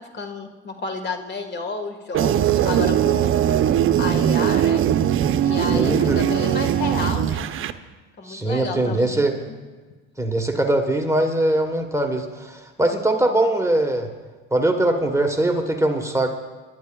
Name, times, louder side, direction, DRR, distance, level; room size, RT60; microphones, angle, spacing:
voice 1, 0.0-3.3 4.0-4.9 5.4-7.5 8.2-9.2, left 3 dB, 35° left, 5 dB, 1.7 m, -31 dB
sound 1, 2.1-7.7, right 10 dB, 45° right, 0.7 m, -20 dB
voice 2, 5.7-6.3 8.2-9.4 10.2-14.1 14.5-16.3, right 1 dB, 10° right, 4 dB, 1.2 m, -21 dB
28.0 x 12.0 x 2.3 m, 1.4 s
supercardioid pair, 85°, 30 cm